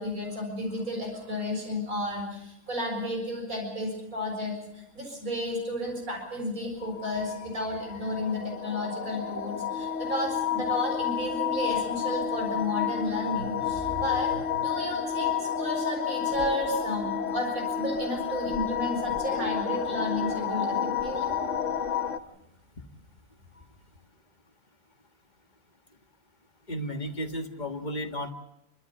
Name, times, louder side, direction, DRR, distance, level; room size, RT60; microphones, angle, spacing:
voice 1, 0.0-21.3 23.5-23.6, left 1 dB, 85° right, 1 dB, 7.3 m, -32 dB
sound 1, 6.8-22.2, left 8 dB, 65° left, 1.3 m, -30 dB
voice 2, 26.7-28.3, equal, 35° left, 6 dB, 1.6 m, -33 dB
29.0 x 13.0 x 8.4 m, 0.89 s
omnidirectional pair, 1.4 m